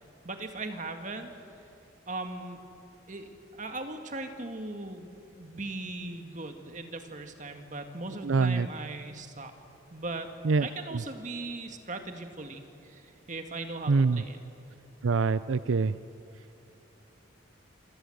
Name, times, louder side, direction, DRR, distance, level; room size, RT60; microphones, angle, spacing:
voice 1, 0.2-1.3 2.1-2.6 3.1-5.1 5.4-9.5 9.9-10.3 10.6-14.4, right 2 dB, 40° right, 6 dB, 1.9 m, -39 dB
voice 2, 8.2-8.7 10.4-10.7 13.9-14.2 15.0-15.9, right 4 dB, 75° right, 14 dB, 0.5 m, -24 dB
26.5 x 26.0 x 8.0 m, 2.8 s
head